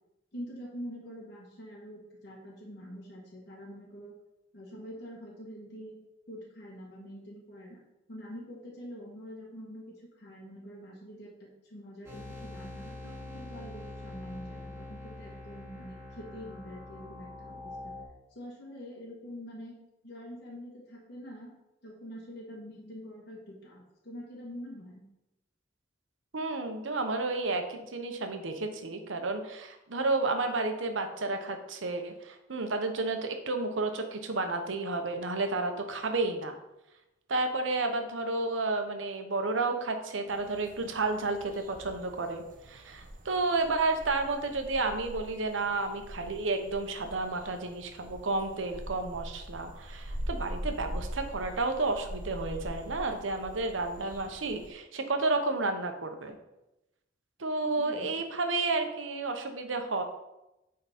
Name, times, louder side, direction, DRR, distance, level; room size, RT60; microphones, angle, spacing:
voice 1, 0.3-4.1 4.5-6.0 6.3-7.8 8.1-17.9 18.3-19.8 20.0-21.5 21.8-25.0 57.7-58.1, equal, 60° left, -4 dB, 1.4 m, -45 dB
sound 1, 12.0-18.0, left 2 dB, 15° right, 2.6 m, -44 dB
voice 2, 26.3-36.6 37.3-56.4 57.4-60.0, right 3 dB, 85° right, 6 dB, 0.9 m, -31 dB
sound 2, 40.3-54.7, equal, 45° right, 0.9 m, -43 dB
9.1 x 3.8 x 4.2 m, 0.94 s
head